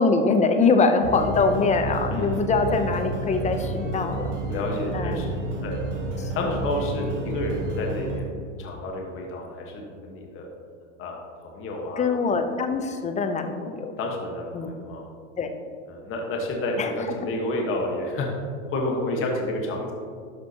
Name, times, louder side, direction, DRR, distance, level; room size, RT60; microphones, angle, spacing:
voice 1, 0.0-4.3 4.9-5.3 6.2-6.5 12.0-13.9 14.5-14.8 15.4-15.5 16.8-16.9, left 4 dB, 20° left, 6 dB, 0.7 m, -23 dB
sound 1, 1.0-8.2, right 2 dB, 70° right, 1.9 m, -30 dB
voice 2, 2.1-2.4 4.5-5.8 6.3-10.5 11.0-12.1 14.0-15.1 15.9-18.3 18.7-19.9, left 1 dB, 35° left, 0 dB, 1.3 m, -30 dB
12.0 x 6.0 x 2.9 m, 2.2 s
hypercardioid pair, 110°, 37 cm